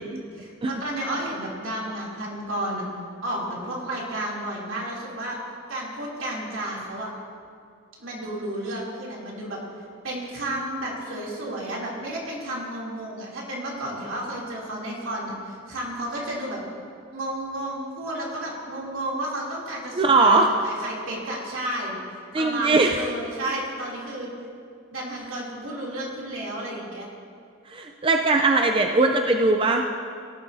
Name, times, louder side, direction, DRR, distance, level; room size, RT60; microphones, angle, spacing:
voice 1, 0.0-2.9 3.2-5.4 5.7-7.1 8.0-9.6 10.0-16.6 17.1-21.9 22.4-24.3 24.9-27.1, right 1 dB, 70° right, -4 dB, 3.0 m, -32 dB
voice 2, 20.0-20.5 22.3-22.9 27.7-29.8, right 3 dB, 25° right, 4 dB, 0.4 m, -20 dB
17.5 x 12.0 x 2.7 m, 2.4 s
head